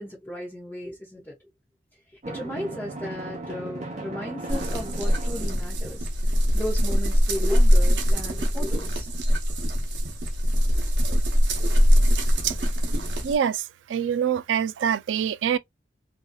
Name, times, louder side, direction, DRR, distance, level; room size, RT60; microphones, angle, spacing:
voice 1, 0.0-1.3 2.3-6.1 6.5-9.1, left 1 dB, 10° left, 1.0 m, -35 dB
Drum, 2.2-6.0, right 2 dB, 40° right, 0.7 m, -37 dB
sound 1, 4.5-13.4, equal, 70° right, 0.8 m, -22 dB
voice 2, 13.2-13.6 13.9-15.6, right 8 dB, 90° right, 0.3 m, -24 dB
2.6 x 2.3 x 2.2 m
head